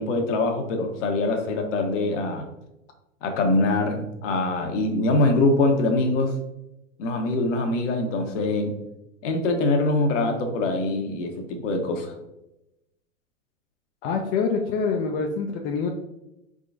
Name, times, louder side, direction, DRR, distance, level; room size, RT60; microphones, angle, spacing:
voice 1, 0.0-2.5 3.2-6.3 7.0-8.8 9.2-12.1, left 2 dB, 60° left, 4 dB, 1.1 m, -23 dB
voice 2, 14.0-15.9, left 5 dB, 45° left, 2 dB, 0.6 m, -25 dB
4.5 x 3.8 x 2.6 m, 0.89 s
hypercardioid pair, 105°, 40 cm